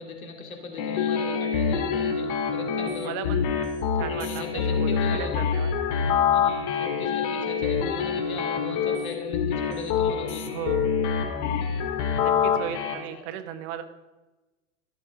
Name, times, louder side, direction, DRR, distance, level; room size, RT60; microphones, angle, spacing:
voice 1, 0.0-3.3 4.1-5.3 6.3-10.5 11.5-12.0 13.1-13.2, left 3 dB, 80° left, 3 dB, 2.8 m, -39 dB
sound 1, 0.8-12.9, left 7 dB, 55° left, 2.0 m, -26 dB
voice 2, 2.7-3.4 4.0-4.4 4.7-5.7 10.5-10.9 12.2-13.8, right 10 dB, 55° right, 10 dB, 1.5 m, -36 dB
13.5 x 12.0 x 3.8 m, 1.1 s
hypercardioid pair, 85°, 41 cm